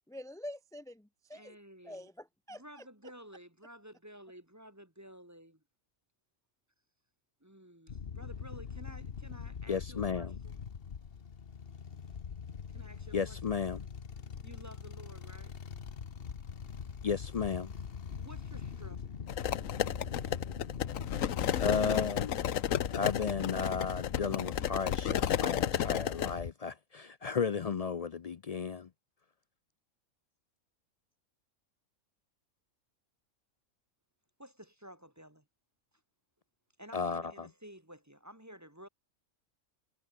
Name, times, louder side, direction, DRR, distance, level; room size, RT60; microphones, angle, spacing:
voice 1, 0.1-1.6 1.8-2.8, left 1 dB, 5° left, 0.5 m, -46 dB
voice 2, 1.3-2.1 2.5-5.6 7.4-10.6 12.7-13.4 13.7-13.8 14.4-15.6 18.2-19.0 34.4-35.4 36.8-38.9, equal, 10° right, 1.8 m, -53 dB
sound 1, 7.9-26.5, left 6 dB, 50° left, 1.2 m, -42 dB
voice 3, 9.7-10.4 13.1-13.8 17.0-17.7 21.6-22.4 22.9-28.9 36.9-37.5, left 5 dB, 65° left, 0.3 m, -34 dB
sound 2, 19.3-26.3, left 10 dB, 80° left, 1.3 m, -32 dB
omnidirectional pair, 1.4 m